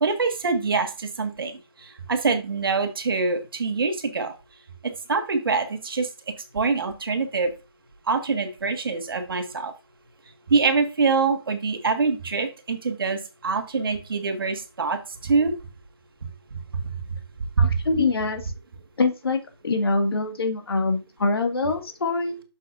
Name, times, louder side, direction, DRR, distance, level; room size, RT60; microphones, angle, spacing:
voice 1, 0.0-4.4 4.8-7.5 8.1-9.7 10.5-15.5 16.2-16.3 16.7-17.0 17.6-17.8, right 4 dB, 60° right, 6 dB, 1.8 m, -25 dB
voice 2, 17.6-18.4 19.0-22.4, left 3 dB, 65° left, 4 dB, 2.2 m, -24 dB
8.3 x 6.8 x 2.7 m, 0.28 s
figure-of-eight pair, 150°, 14 cm